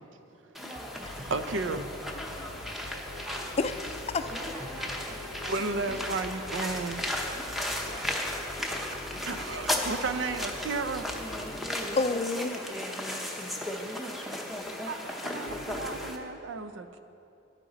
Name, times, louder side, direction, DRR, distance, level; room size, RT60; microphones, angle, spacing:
sound 1, 0.5-16.2, left 1 dB, ahead, 0.7 m, -35 dB
voice 1, 0.6-1.0 3.2-3.6 4.2-5.3 11.8-13.1, equal, 35° right, -6 dB, 2.5 m, -46 dB
sound 2, 0.9-16.1, left 2 dB, 85° left, 0.7 m, -45 dB
voice 2, 1.3-1.9 5.4-7.2 9.1-11.1 13.5-13.7 14.0-14.1 14.8-17.0, right 3 dB, 80° right, 10 dB, 0.5 m, -34 dB
voice 3, 2.2-2.8 3.6-4.3 7.9-8.1 8.6-8.8 11.9-12.6, left 3 dB, 35° left, 10 dB, 0.4 m, -31 dB
10.5 x 9.0 x 3.9 m, 2.7 s
head